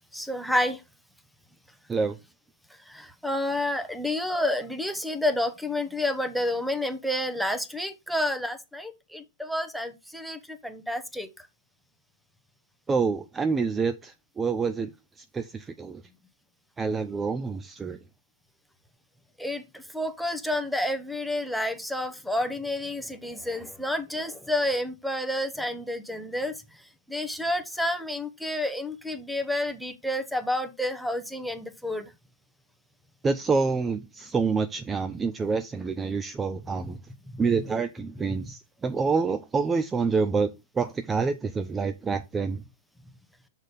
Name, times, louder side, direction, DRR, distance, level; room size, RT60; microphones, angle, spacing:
voice 1, 0.1-0.8 2.9-11.3 19.4-26.6 27.1-32.1 37.3-37.4, left 1 dB, ahead, 0.8 m, -29 dB
voice 2, 12.9-14.9 15.3-16.0 16.8-18.0 33.2-37.0 37.4-40.5 40.8-42.6, right 4 dB, 15° right, 0.5 m, -27 dB
6.4 x 4.0 x 5.0 m
hypercardioid pair, 120°, 0 cm